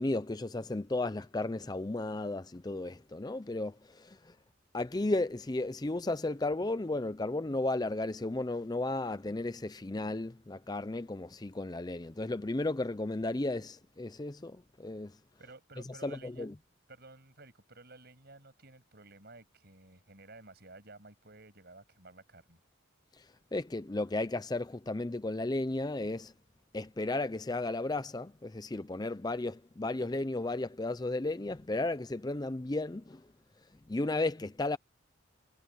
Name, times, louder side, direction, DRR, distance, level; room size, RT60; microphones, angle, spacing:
voice 1, 0.0-4.3 4.7-15.2 16.0-16.5 23.2-23.3 23.5-26.3 26.7-33.2 33.9-34.8, left 2 dB, 20° left, 0.5 m, -34 dB
voice 2, 15.4-16.5 16.9-22.6, right 2 dB, 50° right, 7.5 m, -54 dB
head